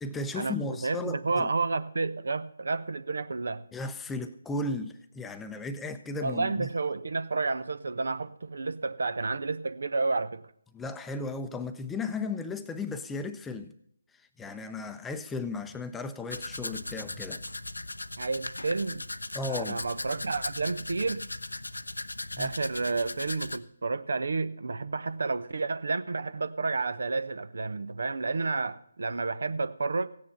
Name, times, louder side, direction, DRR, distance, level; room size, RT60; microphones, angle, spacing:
voice 1, 0.0-1.5 3.7-6.7 10.7-13.7 14.4-17.4 19.3-19.8 22.3-22.5, left 3 dB, 5° left, 9 dB, 0.8 m, -35 dB
voice 2, 0.8-3.6 6.2-10.4 18.2-19.0 19.5-21.2 22.4-30.1, right 3 dB, 55° right, 14 dB, 0.9 m, -30 dB
Domestic sounds home sounds, 16.3-23.6, left 2 dB, 70° left, 0.8 m, -38 dB
15.5 x 9.6 x 5.7 m, 0.68 s
figure-of-eight pair, 145°, 0 cm